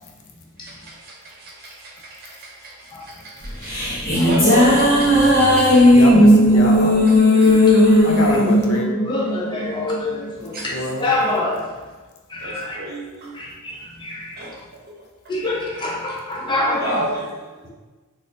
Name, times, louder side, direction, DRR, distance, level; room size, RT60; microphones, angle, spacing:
voice 1, 0.6-3.7 4.0-5.8 7.4-7.5 10.5-10.7 12.4-13.3 14.4-14.6 14.9-15.1 16.8-17.7, right 1 dB, 45° right, -3 dB, 0.8 m, -31 dB
sound 1, 3.4-10.0, left 1 dB, 45° left, 1.0 m, -15 dB
voice 2, 4.2-4.5 5.5-5.8 7.3-8.1 9.0-10.8 11.0-11.7 12.3-12.8 13.3-14.5 15.3-17.0, left 2 dB, 20° left, -3 dB, 0.6 m, -26 dB
voice 3, 5.6-7.0 7.4-7.5 8.0-8.9 10.7-11.1, left 1 dB, 75° left, 1 dB, 0.6 m, -26 dB
4.0 x 2.4 x 2.5 m, 1.3 s
head